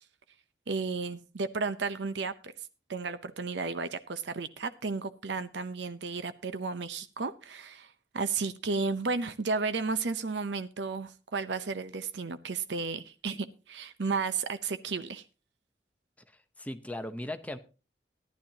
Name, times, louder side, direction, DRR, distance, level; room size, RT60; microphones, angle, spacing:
voice 1, 0.7-2.5 2.9-15.2, right 4 dB, 75° right, 12 dB, 0.7 m, -33 dB
voice 2, 16.3-17.6, left 1 dB, 10° left, 8 dB, 0.8 m, -38 dB
15.0 x 11.5 x 2.8 m, 0.33 s
head